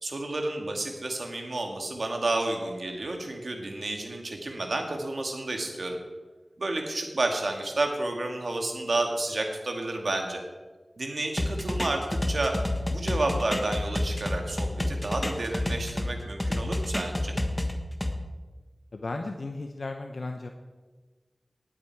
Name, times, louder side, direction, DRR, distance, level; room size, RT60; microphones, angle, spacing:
voice 1, 0.0-6.0 6.6-10.4 11.0-12.6 12.9-17.3, right 2 dB, 75° right, 3 dB, 2.1 m, -31 dB
sound 1, 11.4-16.1 16.4-18.1, left 1 dB, 20° left, 1.5 m, -29 dB
voice 2, 18.9-20.5, left 2 dB, 75° left, 4 dB, 0.8 m, -35 dB
19.0 x 8.7 x 4.8 m, 1.3 s
wide cardioid pair, 50°, 0 cm